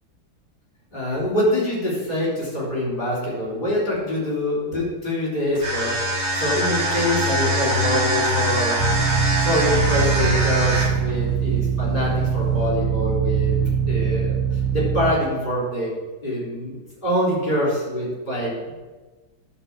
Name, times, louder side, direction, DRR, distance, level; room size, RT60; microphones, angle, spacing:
voice 1, 0.9-9.0 9.4-13.5 13.9-15.9 16.2-18.7, equal, 30° left, -6 dB, 3.7 m, -25 dB
sound 1, 5.6-11.1, equal, 45° right, 2.0 m, -23 dB
sound 2, 8.8-15.1, right 7 dB, 60° right, 0.8 m, -22 dB
9.9 x 3.9 x 7.3 m, 1.2 s
omnidirectional pair, 1.8 m